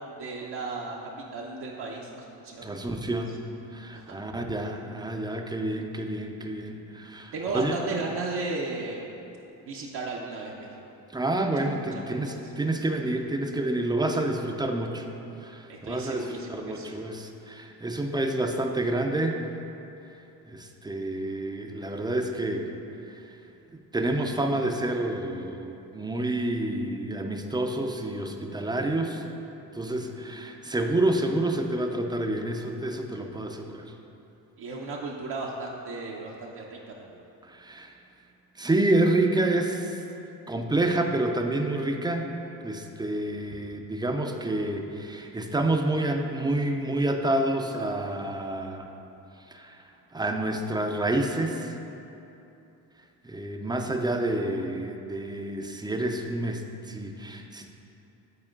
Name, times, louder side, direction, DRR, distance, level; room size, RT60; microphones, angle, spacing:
voice 1, 0.2-1.0 1.3-2.7 3.9-4.2 7.3-9.0 9.7-10.7 11.4-11.5 15.7-16.9 34.6-37.2, right 3 dB, 55° right, -3 dB, 0.8 m, -35 dB
voice 2, 2.6-3.4 3.7-7.7 11.1-15.1 15.4-19.4 20.5-22.7 23.1-23.3 23.9-29.2 29.7-33.9 37.5-37.9 38.6-40.0 40.5-42.3 42.6-48.9 49.5-49.8 50.1-51.7 53.2-57.7, right 1 dB, 10° right, 3 dB, 0.5 m, -28 dB
9.8 x 4.3 x 2.4 m, 2.9 s
hypercardioid pair, 50°, 49 cm